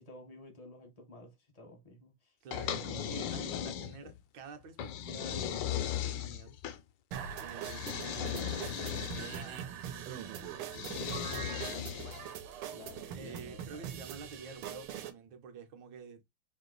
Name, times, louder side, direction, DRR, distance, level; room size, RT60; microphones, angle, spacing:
voice 1, 0.0-3.3 12.7-13.9, left 2 dB, 35° left, 0.6 m, -52 dB
voice 2, 2.4-6.6 7.4-11.1 13.1-16.2, right 5 dB, 65° right, 1.3 m, -49 dB
sound 1, 2.5-4.2 4.8-6.8 7.6-9.5 10.7-12.3, left 10 dB, 75° left, 1.1 m, -37 dB
sound 2, 7.1-15.1, right 9 dB, 90° right, 1.6 m, -42 dB
3.6 x 2.7 x 3.8 m
omnidirectional pair, 2.3 m